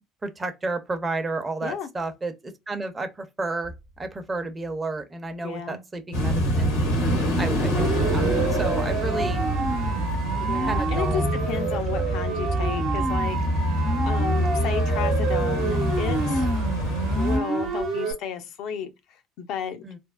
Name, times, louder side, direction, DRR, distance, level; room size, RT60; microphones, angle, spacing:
voice 1, 0.2-2.3 2.7-3.7 4.0-6.8 7.4-9.4 10.7-11.2 11.5-11.8 19.8-20.0, right 3 dB, 25° right, 0.6 m, -31 dB
voice 2, 5.4-5.8 10.4-13.7 14.0-16.5 17.2-19.8, left 8 dB, 65° left, 0.5 m, -33 dB
sound 1, 6.1-17.4, equal, 85° left, 1.1 m, -25 dB
Siren, 7.7-18.1, right 4 dB, 65° right, 0.8 m, -28 dB
3.4 x 2.0 x 2.2 m
hypercardioid pair, 65°, 0 cm